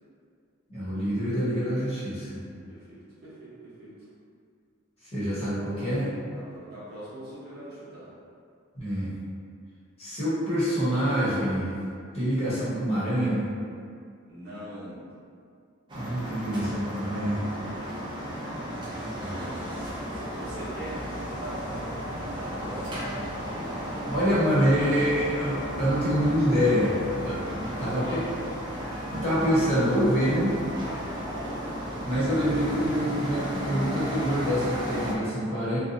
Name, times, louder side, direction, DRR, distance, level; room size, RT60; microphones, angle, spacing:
voice 1, 0.7-2.4 5.1-6.1 8.7-9.1 10.0-11.7 12.1-13.5 15.9-17.4 19.0-19.6 24.1-27.4 27.8-28.4 29.1-30.6 32.1-35.8, equal, 30° left, -11 dB, 1.0 m, -26 dB
voice 2, 2.7-4.1 6.3-8.1 14.3-15.1 18.2-18.8 20.1-23.1 27.4-28.2, right 1 dB, 50° right, -10 dB, 0.9 m, -43 dB
sound 1, 15.9-35.1, equal, 25° right, 0.4 m, -34 dB
2.6 x 2.2 x 2.6 m, 2.3 s
head